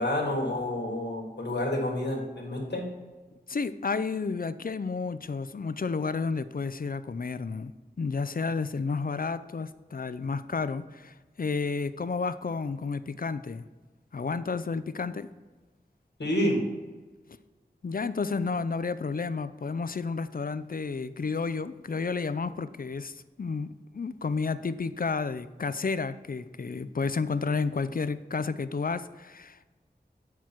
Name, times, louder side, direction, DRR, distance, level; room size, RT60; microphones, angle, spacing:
voice 1, 0.0-2.9 16.2-16.6, left 1 dB, 85° left, -1 dB, 1.7 m, -29 dB
voice 2, 3.5-7.7 8.0-13.6 14.1-15.3 17.8-23.7 23.9-29.6, left 4 dB, 55° left, 13 dB, 0.4 m, -31 dB
9.2 x 4.6 x 4.4 m, 1.3 s
wide cardioid pair, 45°, 17 cm